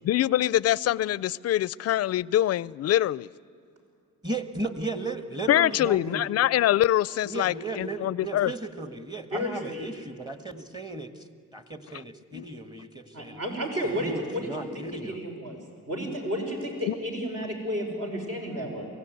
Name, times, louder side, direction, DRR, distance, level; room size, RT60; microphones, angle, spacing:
voice 1, 0.0-3.3 5.5-8.5 11.9-12.0 12.3-12.4 16.9-17.0, left 13 dB, 55° left, 22 dB, 0.5 m, -24 dB
voice 2, 4.2-6.2 7.2-11.2 11.5-13.4 13.8-15.2, right 2 dB, 15° right, 8 dB, 1.5 m, -35 dB
voice 3, 9.3-9.9 13.1-15.6 15.9-18.9, equal, 55° right, 1 dB, 5.5 m, -32 dB
23.5 x 16.0 x 9.3 m, 2.3 s
cardioid pair, 90°, 30 cm